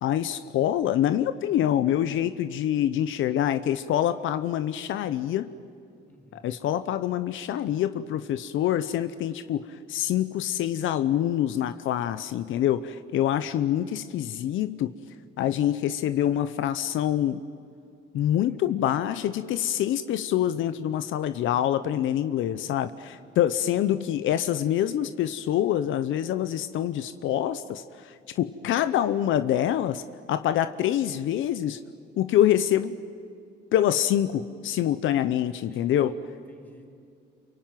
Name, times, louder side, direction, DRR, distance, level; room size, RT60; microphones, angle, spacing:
voice 1, 0.0-5.5 6.3-14.9 15.4-17.4 18.1-30.0 30.3-31.8 32.2-33.0 33.7-36.1, left 11 dB, 80° left, 12 dB, 0.8 m, -26 dB
voice 2, 6.0-6.5 18.5-18.6 18.9-19.2 23.1-23.4 35.4-36.8, equal, 10° left, 2 dB, 5.1 m, -53 dB
28.0 x 23.5 x 9.2 m, 2.4 s
cardioid pair, 90°, 20 cm